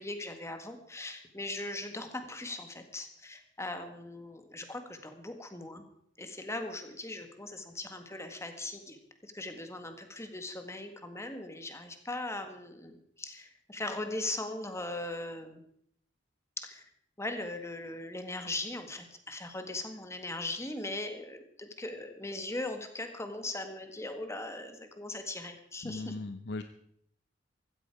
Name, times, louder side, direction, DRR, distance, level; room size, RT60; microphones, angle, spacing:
voice 1, 0.0-5.8 6.2-9.0 9.2-15.6 16.6-16.8 17.2-26.1, left 2 dB, 15° left, 6 dB, 1.8 m, -39 dB
voice 2, 25.8-26.6, left 2 dB, 65° left, 9 dB, 0.7 m, -38 dB
15.5 x 14.0 x 4.8 m, 0.68 s
head